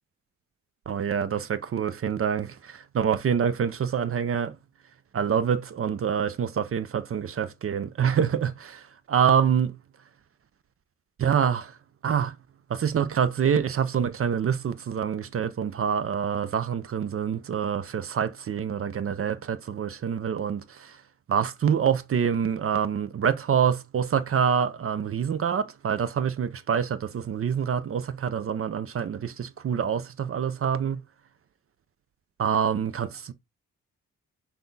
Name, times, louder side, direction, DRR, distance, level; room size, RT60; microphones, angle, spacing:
voice 1, 0.9-4.6 5.1-9.8 11.2-11.8 12.0-12.3 12.7-21.0 21.3-31.0 32.4-33.3, right 8 dB, 45° right, 0.6 m, -26 dB
5.8 x 2.3 x 3.9 m
cardioid pair, 70°, 31 cm